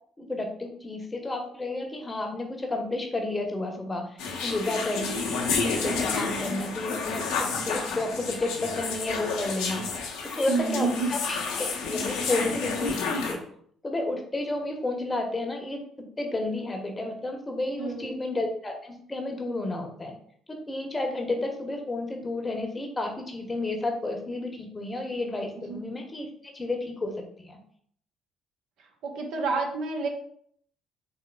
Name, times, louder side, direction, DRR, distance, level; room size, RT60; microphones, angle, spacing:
voice 1, 0.2-7.2 7.6-9.8 10.3-11.4 11.9-13.4 13.8-20.1 20.5-27.6, left 2 dB, 20° left, 3 dB, 0.9 m, -31 dB
sound 1, 4.2-13.3, left 4 dB, 65° left, 0.7 m, -30 dB
voice 2, 10.5-11.1 17.8-18.2 25.7-25.8 28.8-30.1, right 4 dB, 60° right, 2 dB, 0.7 m, -29 dB
4.4 x 3.5 x 2.2 m, 0.63 s
figure-of-eight pair, 45°, 0 cm